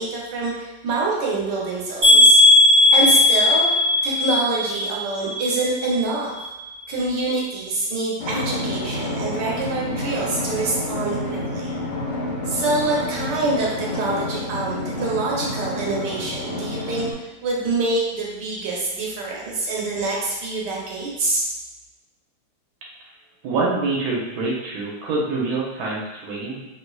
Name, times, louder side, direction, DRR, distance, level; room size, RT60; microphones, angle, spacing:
voice 1, 0.0-3.7 4.0-6.3 6.9-11.7 12.5-17.0 17.4-21.5, right 2 dB, 85° right, -4 dB, 1.4 m, -25 dB
sound 1, 2.0-6.0 6.3-6.9 7.4-7.5 7.8-7.9, left 2 dB, 30° right, 1.2 m, -17 dB
Drum, 8.2-17.1, left 1 dB, 65° left, 0.7 m, -29 dB
voice 2, 23.4-26.7, right 3 dB, 65° right, -4 dB, 1.2 m, -25 dB
3.2 x 2.8 x 2.2 m, 1.0 s
omnidirectional pair, 1.8 m